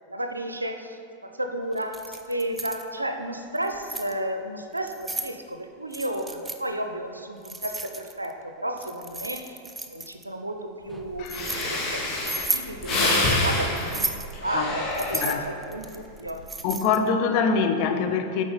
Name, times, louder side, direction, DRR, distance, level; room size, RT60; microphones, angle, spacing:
voice 1, 0.1-9.6 9.9-16.4, right 1 dB, 85° right, 5 dB, 0.5 m, -33 dB
Keys jangling, 1.8-2.8 3.6-4.1 4.8-5.3 5.9-6.6 7.4-8.3 8.8-10.2 10.9-11.6 12.2-12.7 13.8-14.3 14.9-17.1, right 2 dB, 10° right, 0.4 m, -33 dB
Breathing, 11.0-11.1 11.3-15.6 16.0-16.4, left 2 dB, 25° left, 1.8 m, -27 dB
voice 2, 16.6-18.4, left 5 dB, 45° left, 6 dB, 0.6 m, -24 dB
7.6 x 4.9 x 4.1 m, 2.3 s
figure-of-eight pair, 90°, 0 cm